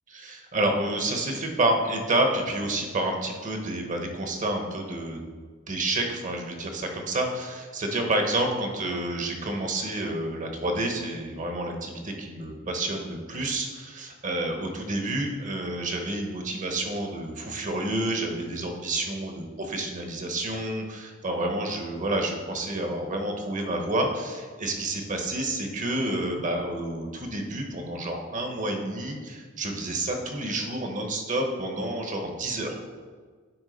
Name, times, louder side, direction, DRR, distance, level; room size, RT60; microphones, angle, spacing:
voice 1, 0.1-5.2 5.7-32.8, right 1 dB, 40° right, 3 dB, 1.0 m, -29 dB
9.0 x 3.6 x 5.1 m, 1.5 s
head